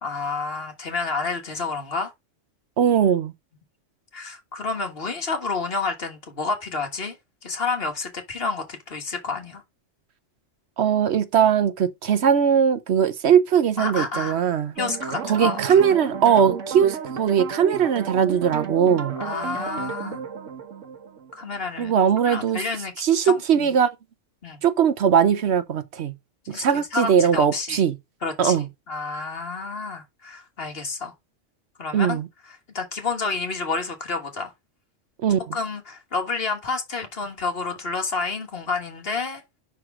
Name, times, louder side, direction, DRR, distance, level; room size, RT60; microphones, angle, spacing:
voice 1, 0.0-2.1 4.1-7.2 7.4-9.6 13.8-14.4 14.8-15.6 15.9-16.0 19.2-20.2 21.4-21.9 22.2-23.7 24.4-24.6 26.5-27.8 28.2-31.1 31.8-32.2 32.7-34.5 35.5-39.4, left 4 dB, 50° left, 1.7 m, -29 dB
voice 2, 2.8-3.3 10.8-14.7 15.2-19.1 21.8-22.6 23.0-23.9 24.6-26.1 26.5-27.9 28.4-28.7 31.9-32.3 35.2-35.4, right 8 dB, 65° right, 1.0 m, -20 dB
sound 1, 14.8-21.8, right 6 dB, 85° right, 1.4 m, -33 dB
5.7 x 4.7 x 5.9 m
omnidirectional pair, 1.2 m